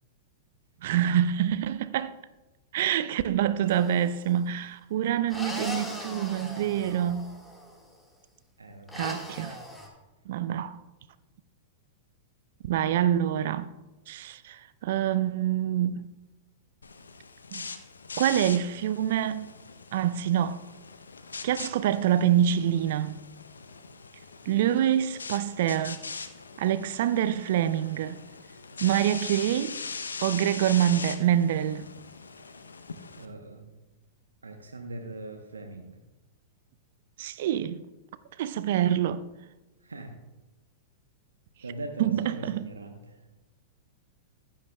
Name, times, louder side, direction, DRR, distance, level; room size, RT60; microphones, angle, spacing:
voice 1, 0.8-2.1 2.7-7.4 9.0-9.6 10.3-10.8 12.7-13.7 14.1-16.1 17.5-17.7 18.2-19.5 19.9-20.6 21.4-23.2 24.5-26.0 26.6-28.2 28.8-29.8 30.2-31.9 37.2-37.8 38.4-39.2 42.0-42.7, right 10 dB, 60° right, 0.4 m, -26 dB
sound 1, 3.7-4.2 5.3-7.7 8.9-9.9, left 1 dB, 5° left, 1.6 m, -39 dB
voice 2, 8.6-9.1 33.2-33.8 34.4-36.0 39.8-40.2 41.6-43.2, right 2 dB, 85° right, 0.8 m, -41 dB
sound 2, 16.8-33.2, left 4 dB, 80° left, 0.6 m, -41 dB
14.5 x 9.0 x 2.2 m
figure-of-eight pair, 100°, 0 cm